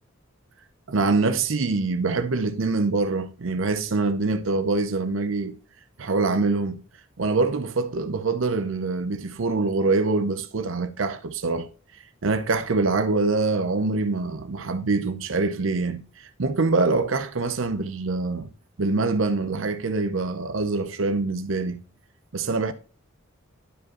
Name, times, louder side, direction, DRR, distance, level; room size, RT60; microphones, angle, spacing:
voice 1, 0.9-5.6 6.0-6.8 7.2-11.7 12.2-18.5 18.8-21.8 22.3-22.7, right 3 dB, 75° right, 0.7 m, -24 dB
12.0 x 5.0 x 3.0 m
head